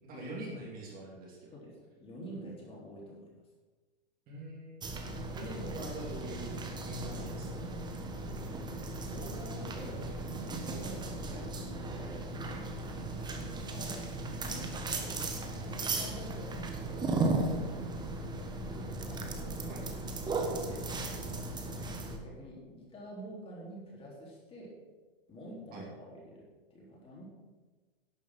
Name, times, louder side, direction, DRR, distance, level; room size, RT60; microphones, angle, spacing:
voice 1, 0.0-1.5 4.3-4.8 5.1-7.7 11.3-11.4 19.7-19.8 20.7-20.8 25.7-25.8, right 2 dB, 30° right, -2 dB, 3.0 m, -44 dB
voice 2, 1.5-3.4 8.2-8.6 9.0-10.0 10.4-12.9 13.4-14.0 14.4-18.4 18.7-19.6 20.3-21.3 22.2-24.7 25.3-26.5 26.7-27.2, equal, 20° left, -4 dB, 3.5 m, -48 dB
sound 1, 4.8-22.2, right 2 dB, 15° right, 1.3 m, -36 dB
11.5 x 7.2 x 5.9 m, 1.3 s
hypercardioid pair, 130°, 29 cm